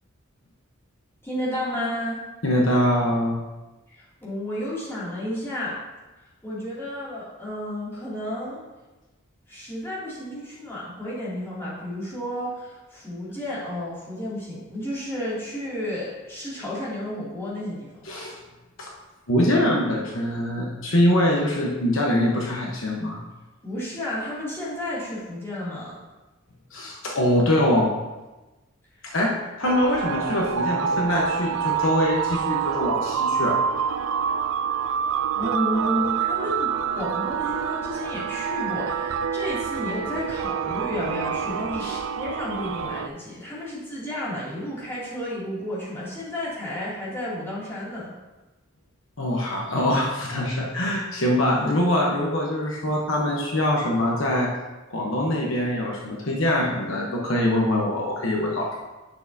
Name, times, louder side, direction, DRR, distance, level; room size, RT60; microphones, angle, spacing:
voice 1, 1.2-2.2 3.9-5.7 6.4-8.6 9.5-18.0 23.6-26.0 35.3-48.1, equal, 10° left, -9 dB, 2.6 m, -32 dB
voice 2, 2.4-3.4 18.0-18.3 18.8-18.9 19.3-23.2 26.7-27.9 29.0-29.3 29.6-33.6 41.8-41.9 49.2-54.5 54.9-58.8, left 1 dB, 65° left, -2 dB, 1.0 m, -23 dB
sound 1, 29.6-43.1, right 7 dB, 80° right, 0.4 m, -27 dB
9.7 x 6.4 x 2.7 m, 1.1 s
head